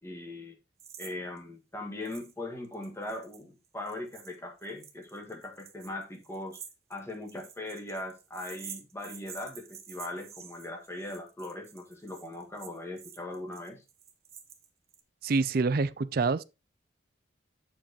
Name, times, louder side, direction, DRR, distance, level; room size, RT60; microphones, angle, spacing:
voice 1, 0.0-0.5 1.0-6.6 6.9-13.8, left 1 dB, 15° left, 1.6 m, -40 dB
sound 1, 0.8-1.1 1.4-1.5 2.0-2.3 2.6-15.0, right 8 dB, 30° right, 1.1 m, -49 dB
voice 2, 15.2-16.4, right 4 dB, 50° right, 0.4 m, -26 dB
7.4 x 7.4 x 2.9 m
head